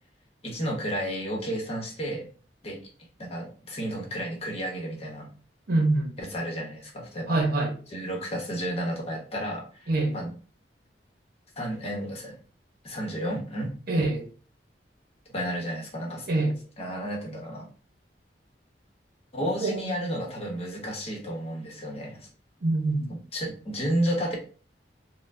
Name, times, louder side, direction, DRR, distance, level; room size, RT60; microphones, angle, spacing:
voice 1, 0.4-2.3 2.6-2.8 3.2-5.3 6.2-7.4 7.9-10.3 11.6-12.4 12.8-13.7 15.3-16.3 16.8-17.7 19.3-22.3 23.1-24.4, equal, 35° left, 0.9 m, -32 dB
voice 2, 5.7-6.1 7.3-7.8 9.9-10.2 13.9-14.3 16.3-16.5 19.4-19.8 22.6-23.1, right 2 dB, 60° right, 0.8 m, -25 dB
4.2 x 2.1 x 2.6 m
head